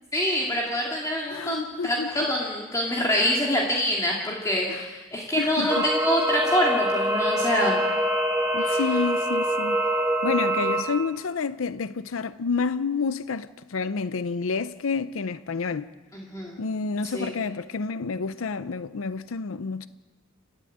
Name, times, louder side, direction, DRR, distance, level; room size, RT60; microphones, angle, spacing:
voice 1, 0.1-7.8 8.6-8.8 16.1-16.6 17.0-17.3, equal, 15° left, 2.5 m, -26 dB
voice 2, 1.3-2.3 4.7-4.8 5.4-5.9 8.5-9.8 10.2-15.9 16.6-19.9, left 4 dB, 85° left, 0.6 m, -29 dB
sound 1, 5.7-10.8, right 1 dB, 15° right, 3.1 m, -25 dB
30.0 x 12.0 x 8.6 m
head